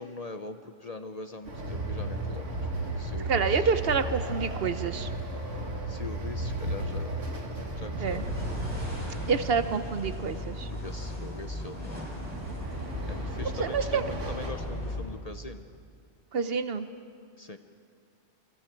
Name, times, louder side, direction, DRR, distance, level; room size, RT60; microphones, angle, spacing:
voice 1, 0.0-2.7 3.0-3.7 5.9-7.3 7.8-8.5 10.7-12.1 13.1-15.7 17.4-17.6, left 3 dB, 40° left, 8 dB, 0.7 m, -42 dB
Train, 1.4-9.9 11.8-14.5, right 1 dB, 85° right, 2.3 m, -34 dB
voice 2, 3.3-5.1 8.0-8.3 9.2-10.7 13.6-14.0 16.3-16.9, right 5 dB, 60° right, 11 dB, 0.9 m, -28 dB
sound 1, 8.0-15.0, left 1 dB, 10° right, 6.5 m, -37 dB
28.5 x 24.5 x 4.5 m, 2.3 s
omnidirectional pair, 1.2 m